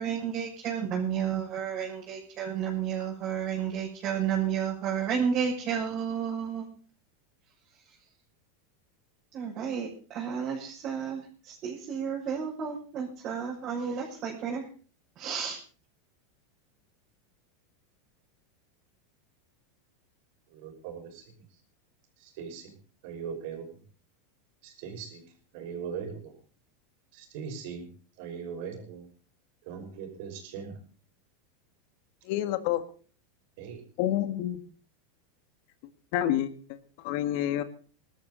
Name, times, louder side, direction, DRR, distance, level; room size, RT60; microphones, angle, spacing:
voice 1, 0.0-6.6 9.3-14.7 15.2-15.6, right 7 dB, 40° right, -3 dB, 6.0 m, -31 dB
voice 2, 20.5-21.6 22.2-22.8 23.0-23.8 24.6-25.3 25.5-26.4 27.1-27.9 28.2-29.1 29.6-30.8 33.6-33.8, right 6 dB, 65° right, 4 dB, 5.8 m, -40 dB
voice 3, 32.2-32.8 34.0-34.6 36.1-37.6, left 12 dB, 60° left, 11 dB, 1.8 m, -28 dB
20.0 x 13.0 x 4.1 m, 0.41 s
hypercardioid pair, 105°, 0 cm